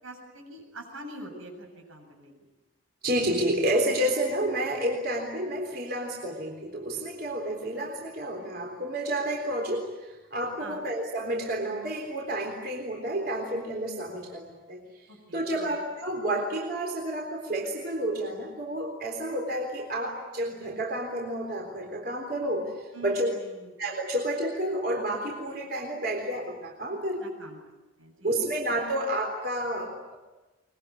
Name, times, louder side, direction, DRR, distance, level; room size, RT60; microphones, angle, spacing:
voice 1, 0.0-2.3 10.6-10.9 15.1-15.8 22.9-23.7 27.2-27.6 28.0-28.5 28.8-28.9, right 1 dB, 85° right, 3 dB, 7.7 m, -44 dB
voice 2, 3.0-15.1 15.3-23.3 23.8-27.3 28.2-30.2, right 1 dB, 50° right, 1 dB, 3.8 m, -30 dB
24.0 x 22.0 x 9.8 m, 1.1 s
head